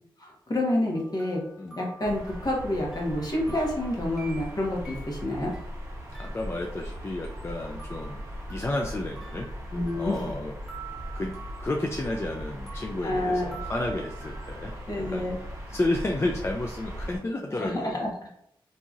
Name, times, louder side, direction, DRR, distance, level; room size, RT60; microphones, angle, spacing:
voice 1, 0.2-1.4 1.8-5.5 9.7-10.3 13.0-13.6 14.9-15.4 17.5-18.3, left 1 dB, 45° left, -2 dB, 1.0 m, -28 dB
sound 1, 0.9-5.7 6.1-10.4 10.7-15.2, right 5 dB, 5° right, 1.1 m, -48 dB
sound 2, 2.0-17.2, equal, 35° right, 0.9 m, -39 dB
voice 2, 6.2-9.5 9.9-10.5 11.1-14.7 15.1-15.3 15.7-18.1, left 2 dB, 30° left, 1 dB, 0.3 m, -31 dB
2.9 x 2.6 x 2.4 m, 0.73 s
cardioid pair, 60°, 9 cm